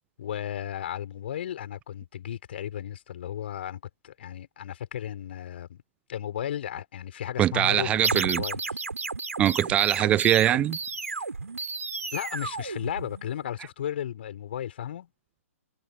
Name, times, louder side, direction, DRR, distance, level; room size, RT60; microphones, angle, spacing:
voice 1, 0.2-5.8 6.1-8.8 12.1-15.1, left 10 dB, 45° left, 4.4 m, -35 dB
voice 2, 7.4-8.4 9.4-10.8, right 12 dB, 15° right, 0.6 m, -22 dB
sound 1, 8.0-13.5, right 4 dB, 70° right, 3.8 m, -32 dB
figure-of-eight pair, 130°, 8 cm